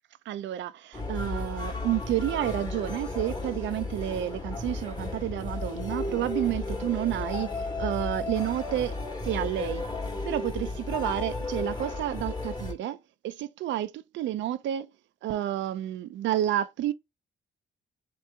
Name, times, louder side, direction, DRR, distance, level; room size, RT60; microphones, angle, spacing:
voice 1, 0.3-7.5 7.8-9.0 9.2-9.9 10.3-13.0 13.2-14.9 15.2-16.9, right 12 dB, 70° right, 0.4 m, -30 dB
sound 1, 0.9-12.7, left 2 dB, 20° left, 1.2 m, -34 dB
3.3 x 3.0 x 3.3 m
cardioid pair, 90°, 20 cm